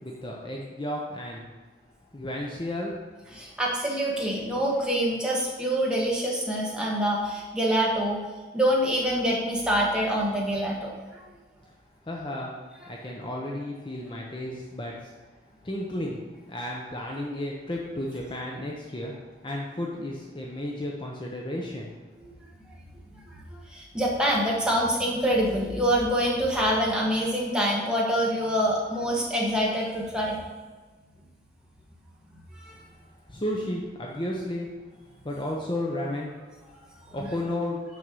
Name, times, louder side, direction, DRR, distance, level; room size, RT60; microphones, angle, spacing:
voice 1, 0.0-1.4 2.1-3.0 3.3-3.4 11.7-11.8 12.0-12.5 12.9-15.1 15.6-19.1 19.4-22.0 33.3-34.7 35.2-36.3 37.1-37.8, left 1 dB, 25° left, -2 dB, 0.7 m, -33 dB
voice 2, 3.3-8.2 8.5-11.2 14.3-14.5 23.5-30.4 32.5-32.8 37.2-37.3, equal, 5° right, -4 dB, 1.3 m, -26 dB
6.2 x 5.4 x 6.2 m, 1.3 s
head